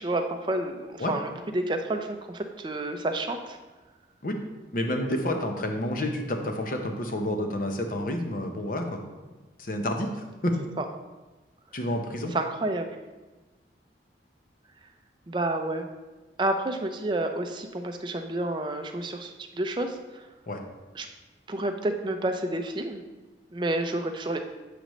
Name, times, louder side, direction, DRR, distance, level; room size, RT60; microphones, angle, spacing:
voice 1, 0.0-3.6 10.8-10.9 12.3-12.9 15.3-15.9 16.4-20.3 20.9-21.1 21.5-23.0 23.5-24.4, right 2 dB, 25° right, 5 dB, 0.4 m, -30 dB
voice 2, 4.7-9.0 9.6-10.6 11.7-12.4 20.5-20.6, left 1 dB, 50° left, 4 dB, 0.7 m, -29 dB
7.7 x 5.0 x 3.1 m, 1.2 s
head